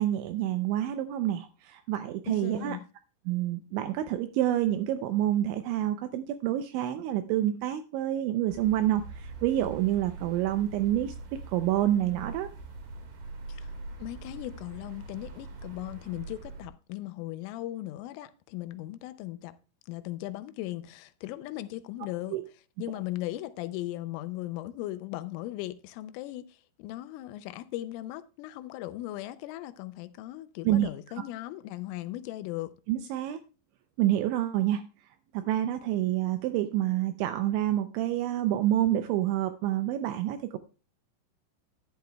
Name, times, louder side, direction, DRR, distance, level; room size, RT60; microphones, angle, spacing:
voice 1, 0.0-2.8 3.3-11.2 11.5-12.5 22.3-22.4 30.7-30.9 31.2-31.3 32.9-33.4 34.0-34.8 35.3-40.6, right 13 dB, 85° right, 2.6 m, -28 dB
voice 2, 2.3-2.8 13.5-13.7 14.0-19.6 19.9-22.4 22.8-32.8, left 15 dB, 85° left, 3.1 m, -38 dB
sound 1, 8.5-16.7, right 3 dB, 55° right, 2.7 m, -43 dB
11.5 x 11.5 x 2.2 m
omnidirectional pair, 5.9 m